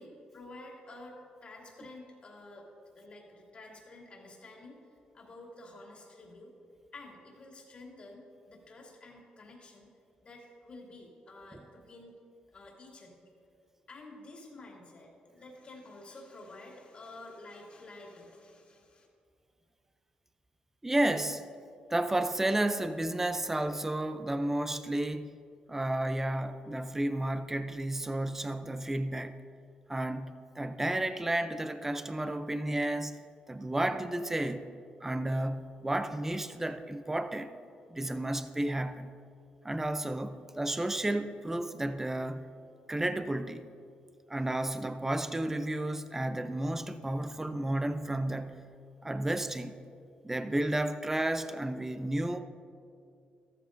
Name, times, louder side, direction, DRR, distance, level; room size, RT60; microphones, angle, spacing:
voice 1, 0.0-2.7 2.9-4.9 5.1-6.5 6.9-9.9 10.2-12.1 12.5-13.3 13.9-19.1, left 2 dB, 40° left, -1 dB, 2.5 m, -50 dB
voice 2, 20.8-21.5 21.9-25.3 25.7-29.4 29.9-33.2 33.5-34.7 35.0-37.5 37.9-39.1 39.6-42.5 42.9-43.7 44.3-48.6 49.0-49.7 50.2-52.4, right 1 dB, 15° right, 10 dB, 0.5 m, -32 dB
14.0 x 13.0 x 2.6 m, 2.4 s
cardioid pair, 105°, 3 cm